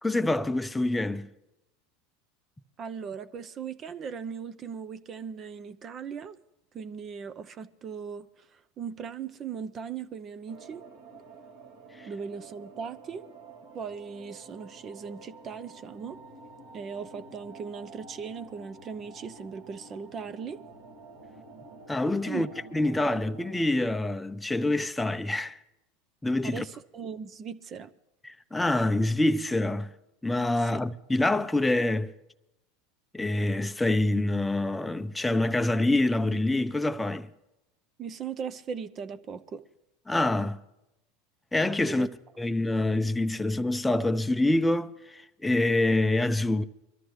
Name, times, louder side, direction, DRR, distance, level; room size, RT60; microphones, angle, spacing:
voice 1, 0.0-1.3 12.0-12.1 21.9-25.6 26.2-26.6 28.2-29.9 30.2-32.1 33.1-37.3 40.1-40.6 41.5-42.1 42.4-46.6, left 2 dB, 10° left, 0.6 m, -26 dB
voice 2, 2.8-6.4 6.7-10.9 12.1-13.3 13.7-16.2 16.7-20.6 22.2-22.5 26.4-27.9 30.6-30.8 38.0-39.6 41.9-42.1, right 6 dB, 35° right, 0.7 m, -38 dB
sound 1, 10.5-23.7, right 3 dB, 70° right, 2.3 m, -49 dB
23.5 x 13.0 x 3.2 m
hypercardioid pair, 90°, 0 cm